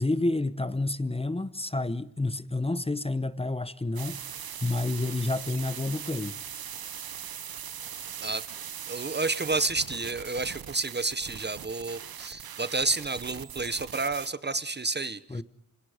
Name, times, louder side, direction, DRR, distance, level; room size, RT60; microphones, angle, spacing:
voice 1, 0.0-6.4 15.3-15.4, left 2 dB, 15° left, 0.9 m, -29 dB
sound 1, 4.0-14.3, right 9 dB, 85° right, 1.0 m, -40 dB
voice 2, 8.9-15.4, right 3 dB, 30° right, 0.9 m, -30 dB
28.0 x 25.5 x 5.0 m
wide cardioid pair, 135°, 35 cm